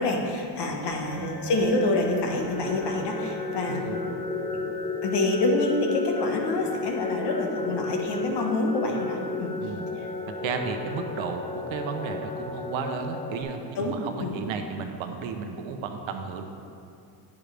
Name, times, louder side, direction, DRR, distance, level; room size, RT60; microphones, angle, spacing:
voice 1, 0.0-3.8 5.0-9.5 13.8-14.4, left 2 dB, 60° left, 1 dB, 1.4 m, -27 dB
sound 1, 0.9-13.4, left 3 dB, 10° left, 1.3 m, -33 dB
voice 2, 1.2-1.5 3.7-4.2 9.6-9.9 10.4-16.4, right 5 dB, 80° right, 5 dB, 1.0 m, -33 dB
9.6 x 8.7 x 3.4 m, 2.5 s
cardioid pair, 125°, 46 cm